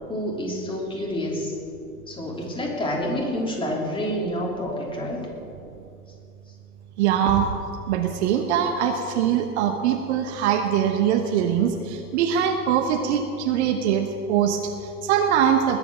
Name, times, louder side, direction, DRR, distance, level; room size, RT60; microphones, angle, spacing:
voice 1, 0.1-1.5 2.1-5.2, equal, 10° left, -2 dB, 3.2 m, -28 dB
voice 2, 7.0-7.5 7.9-15.8, right 8 dB, 45° right, 6 dB, 1.2 m, -22 dB
20.0 x 8.1 x 6.2 m, 2.6 s
figure-of-eight pair, 100°, 45 cm